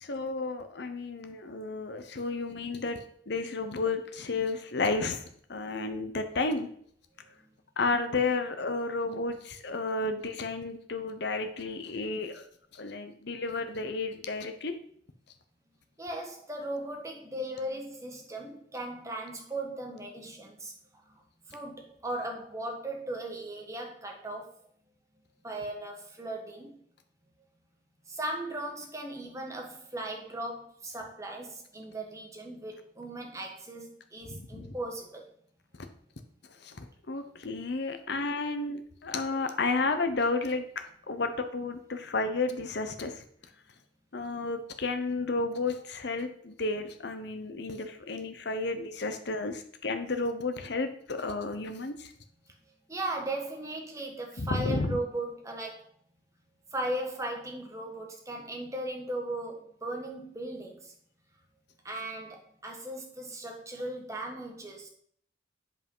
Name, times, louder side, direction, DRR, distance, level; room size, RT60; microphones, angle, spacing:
voice 1, 0.0-5.2 5.5-6.7 7.8-12.5 12.7-14.7 34.2-34.8 36.6-43.2 44.1-52.1 54.4-55.0, left 3 dB, 60° left, 8 dB, 0.9 m, -32 dB
voice 2, 16.0-20.7 21.5-24.5 25.4-26.8 28.1-35.2 52.9-55.8 56.7-60.9 61.8-64.9, right 1 dB, 15° right, 1 dB, 1.5 m, -37 dB
8.1 x 5.0 x 5.5 m, 0.62 s
head